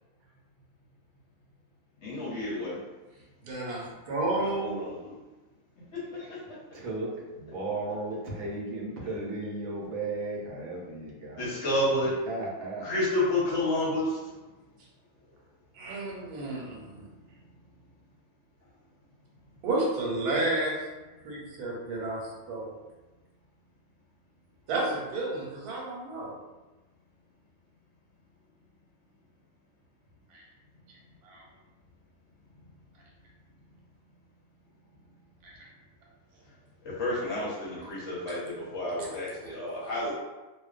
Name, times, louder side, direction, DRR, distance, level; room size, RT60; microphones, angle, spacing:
voice 1, 2.0-2.8 4.3-5.1 5.9-6.6 11.3-12.1 12.8-14.2 16.5-16.6 36.8-40.1, left 1 dB, 60° left, -7 dB, 0.8 m, -30 dB
voice 2, 3.4-4.8 15.7-17.0 19.6-20.8 21.2-22.8 24.7-26.3 30.3-30.4 31.2-31.4 35.4-35.5 37.8-37.9 39.0-39.1, right 2 dB, 90° right, -3 dB, 1.2 m, -31 dB
voice 3, 6.7-11.6 12.2-12.9, right 2 dB, 70° right, -3 dB, 0.9 m, -35 dB
2.5 x 2.1 x 2.4 m, 1.1 s
omnidirectional pair, 1.6 m